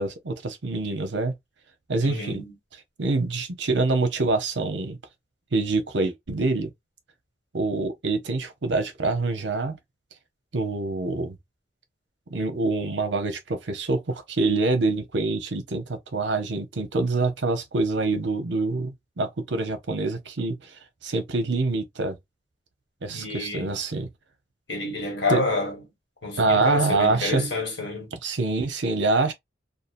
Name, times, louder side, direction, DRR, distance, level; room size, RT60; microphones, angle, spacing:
voice 1, 0.0-1.3 1.9-2.4 3.0-5.0 5.5-6.7 7.5-9.8 10.5-11.3 12.3-20.7 21.0-22.1 23.0-24.1 25.3-25.4 26.4-27.4 28.1-29.3, right 3 dB, 80° right, 0.7 m, -25 dB
voice 2, 2.0-2.5 23.1-23.8 24.7-25.8 26.2-28.1, left 2 dB, 75° left, 1.5 m, -29 dB
2.8 x 2.3 x 2.5 m
head